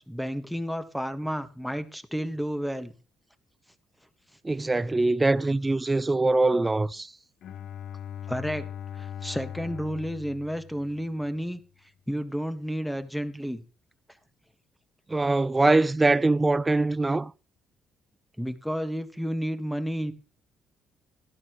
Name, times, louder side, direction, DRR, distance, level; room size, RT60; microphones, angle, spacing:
voice 1, 0.0-2.9 8.3-8.6 8.9-11.6 12.1-13.6 18.4-20.1, equal, ahead, 1.7 m, -31 dB
voice 2, 4.4-7.1 15.1-17.3, right 2 dB, 20° right, 0.4 m, -23 dB
Bowed string instrument, 7.4-11.3, left 9 dB, 65° left, 0.9 m, -40 dB
13.0 x 12.0 x 3.2 m
hypercardioid pair, 55°, 0 cm